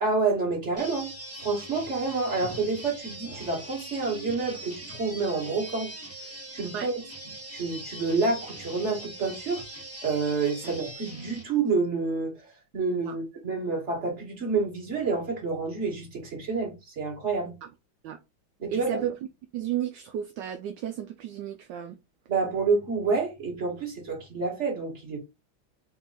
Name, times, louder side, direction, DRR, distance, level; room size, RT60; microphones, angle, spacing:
voice 1, 0.0-1.1 1.4-5.9 6.5-6.9 7.5-9.6 10.0-12.3 12.7-17.6 18.6-19.1 22.3-25.2, right 4 dB, 35° right, 2.0 m, -28 dB
sound 1, 0.8-11.4, right 1 dB, 10° right, 0.8 m, -42 dB
voice 2, 18.7-19.2 19.5-22.0, right 10 dB, 75° right, 1.2 m, -33 dB
3.9 x 3.0 x 4.0 m
omnidirectional pair, 2.2 m